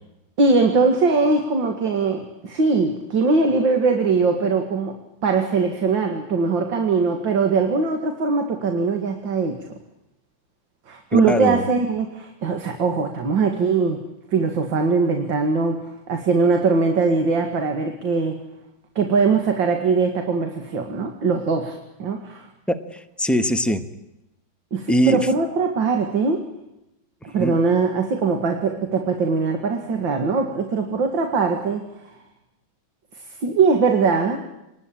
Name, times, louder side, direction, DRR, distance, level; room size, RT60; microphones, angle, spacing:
voice 1, 0.4-5.0 5.2-9.6 10.9-14.0 14.3-18.4 19.0-22.5 24.7-26.5 27.2-31.9 33.4-34.4, right 4 dB, 65° right, 5 dB, 2.7 m, -21 dB
voice 2, 11.1-11.7 22.7-23.8 24.9-25.3 27.4-27.6, equal, ahead, 7 dB, 1.0 m, -21 dB
27.0 x 20.5 x 8.8 m, 0.89 s
omnidirectional pair, 2.2 m